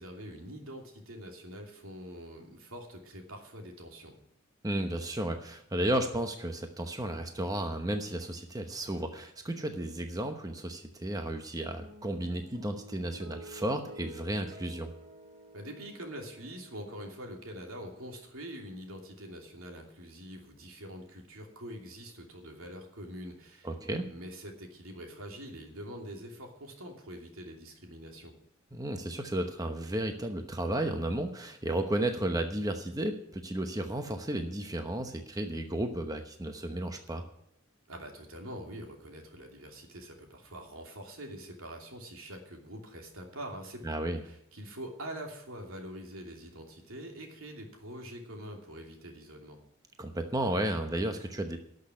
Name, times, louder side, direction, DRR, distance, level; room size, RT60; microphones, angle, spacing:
voice 1, 0.0-4.2 15.5-23.7 24.1-28.3 37.9-43.8 44.2-49.6, equal, 75° right, 2 dB, 2.8 m, -44 dB
voice 2, 4.6-14.9 23.6-24.1 28.7-37.3 43.8-44.2 50.0-51.6, right 1 dB, 20° right, 5 dB, 1.0 m, -33 dB
sound 1, 11.8-18.4, right 1 dB, 45° right, 2.5 m, -51 dB
12.0 x 6.5 x 9.7 m, 0.71 s
head